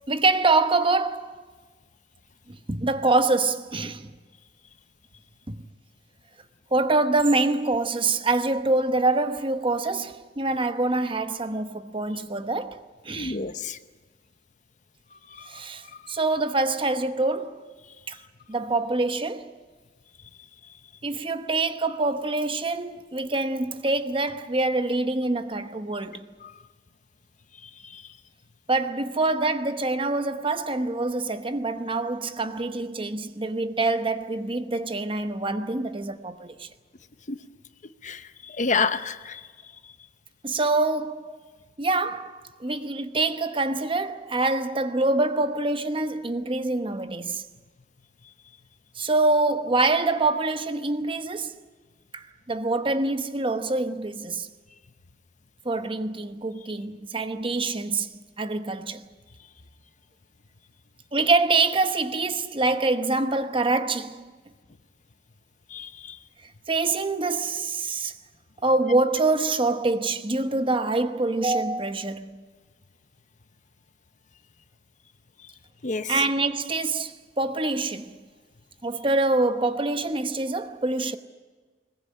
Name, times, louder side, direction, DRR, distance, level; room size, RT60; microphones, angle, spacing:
voice 1, 0.1-1.4 2.5-4.1 5.5-5.6 6.7-13.4 15.5-17.7 18.1-18.2 18.5-19.5 21.0-26.3 28.7-36.7 40.4-41.4 41.8-47.4 49.0-51.6 52.1-54.5 55.6-58.1 58.4-59.0 61.1-64.3 66.7-68.1 68.6-72.4 76.1-78.2 78.8-81.2, right 3 dB, 30° right, 1.0 m, -25 dB
voice 2, 13.2-13.8 15.4-15.5 27.9-28.0 37.3-37.4 38.0-38.2 38.6-39.4 65.7-66.2 75.8-76.1, left 4 dB, 45° left, 0.9 m, -28 dB
21.0 x 20.5 x 8.7 m
head